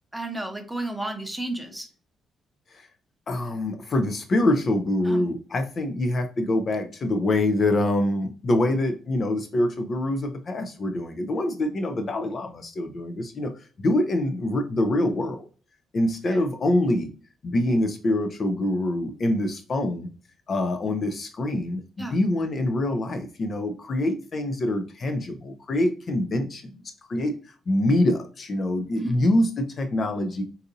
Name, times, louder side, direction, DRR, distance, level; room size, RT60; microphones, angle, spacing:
voice 1, 0.1-1.9 5.1-5.2 16.3-16.4 22.0-22.2 29.0-29.2, right 2 dB, 5° right, 5 dB, 0.7 m, -32 dB
voice 2, 3.3-13.5 13.8-15.4 15.9-17.1 17.4-20.1 20.5-26.8 27.1-27.4 27.7-30.4, left 1 dB, 45° left, 6 dB, 0.4 m, -25 dB
3.9 x 2.6 x 2.5 m, 0.38 s
cardioid pair, 90°, 0 cm